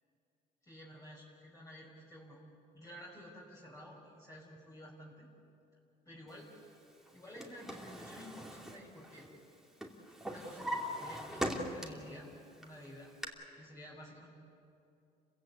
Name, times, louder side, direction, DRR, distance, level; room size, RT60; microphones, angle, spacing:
voice 1, 0.6-2.4 2.7-5.3 6.1-6.5 7.1-9.3 10.2-12.3 12.6-13.1 13.6-14.3, equal, 20° left, -4 dB, 5.2 m, -52 dB
Drawer open or close, 7.1-9.5 9.8-12.1 12.6-13.3, equal, ahead, 2.7 m, -40 dB
30.0 x 16.0 x 8.2 m, 2.6 s
cardioid pair, 110°, 17 cm